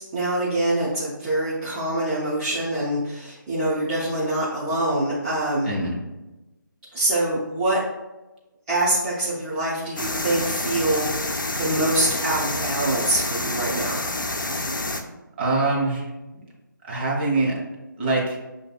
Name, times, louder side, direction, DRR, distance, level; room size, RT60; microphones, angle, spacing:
voice 1, 0.0-5.7 6.9-7.8 8.7-14.0, right 1 dB, 15° right, -9 dB, 0.5 m, -25 dB
sound 1, 10.0-15.0, left 2 dB, 70° left, 0.5 m, -28 dB
voice 2, 15.4-16.1 16.9-17.5 18.0-18.5, right 2 dB, 35° right, -4 dB, 1.1 m, -23 dB
6.5 x 2.6 x 2.3 m, 1.0 s
figure-of-eight pair, 150°, 11 cm